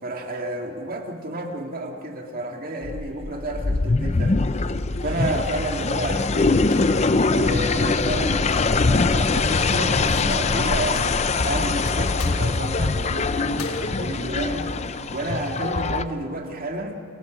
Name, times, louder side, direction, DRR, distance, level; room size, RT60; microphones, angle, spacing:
voice 1, 0.0-4.4 5.0-11.2 11.4-14.7 15.1-17.0, right 1 dB, 40° right, 1 dB, 2.3 m, -31 dB
sound 1, 2.8-16.0, left 3 dB, 30° left, 0.5 m, -23 dB
sound 2, 6.4-15.6, left 2 dB, 85° left, 1.2 m, -36 dB
sound 3, 7.7-12.6, equal, 5° right, 4.6 m, -46 dB
29.0 x 24.0 x 5.3 m, 2.7 s
head